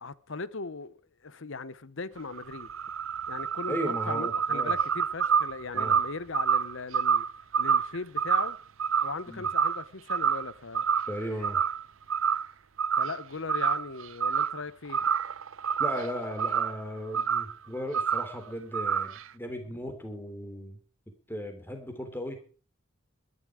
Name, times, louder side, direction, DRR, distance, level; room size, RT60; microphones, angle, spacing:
voice 1, 0.0-2.7 3.3-7.3 7.6-8.6 9.0-10.8 12.9-15.0 19.7-19.8, left 4 dB, 60° left, 1.0 m, -38 dB
sound 1, 2.2-9.8 10.1-10.5 10.8-11.8 12.1-12.5 12.8-13.2 13.5-14.6 14.9-16.8 17.1-17.5 17.9-18.3 18.7-19.2, right 7 dB, 70° right, 0.6 m, -28 dB
voice 2, 3.7-4.8 5.7-6.0 9.3-9.5 11.1-11.6 15.8-20.8 21.3-22.4, equal, 10° left, 3.4 m, -36 dB
20.5 x 11.5 x 4.9 m
head